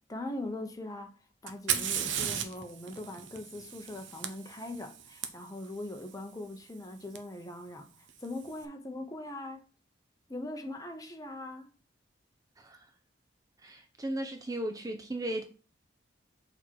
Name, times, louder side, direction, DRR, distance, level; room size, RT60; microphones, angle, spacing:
voice 1, 0.1-1.1 1.4-9.6 10.3-11.7, left 1 dB, 20° left, 1.0 m, -41 dB
Fire, 1.5-5.3 7.2-7.3 8.1-8.5, right 8 dB, 75° right, 0.9 m, -35 dB
voice 2, 12.6-12.9 13.6-15.4, right 1 dB, 20° right, 0.6 m, -36 dB
6.5 x 4.4 x 4.7 m
head